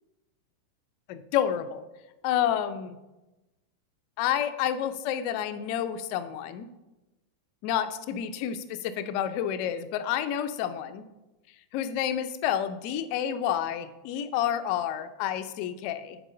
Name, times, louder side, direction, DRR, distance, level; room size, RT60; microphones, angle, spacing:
voice 1, 1.1-1.8 2.2-3.0 4.2-6.7 7.6-11.0 11.7-16.2, left 10 dB, 45° left, 11 dB, 0.5 m, -29 dB
7.4 x 4.7 x 5.1 m, 1.0 s
figure-of-eight pair, 90°, 0 cm